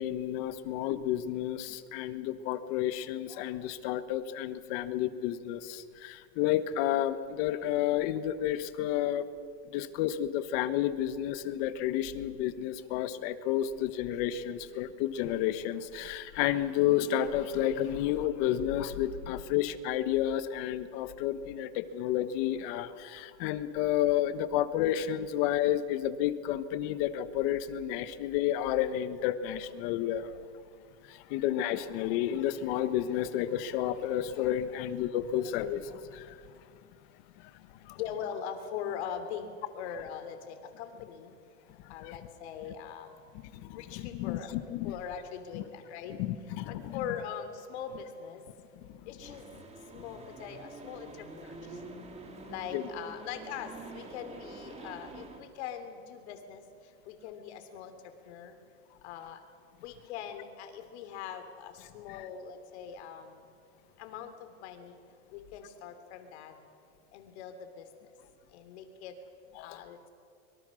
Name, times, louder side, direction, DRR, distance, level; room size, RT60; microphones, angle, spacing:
voice 1, 0.0-9.3 9.7-30.3 31.1-36.4 37.4-37.5 37.8-38.0 41.8-42.2 43.5-45.0 45.5-45.6 46.1-47.0 48.9-49.0 52.7-52.9 62.1-62.3 69.5-69.8, left 11 dB, 65° left, 12 dB, 1.4 m, -31 dB
voice 2, 37.9-41.3 41.9-43.1 43.7-44.5 44.8-46.2 46.7-48.4 49.1-49.6 49.9-51.8 52.5-57.9 58.2-58.6 59.0-59.4 59.8-63.4 64.0-65.0 65.3-66.6 67.1-67.9 68.5-69.1 69.6-70.1, left 8 dB, 90° left, 7 dB, 3.2 m, -41 dB
sound 1, 49.2-55.4, right 3 dB, 20° right, 2.6 m, -46 dB
24.5 x 23.5 x 6.5 m, 2.3 s
supercardioid pair, 155°, 32 cm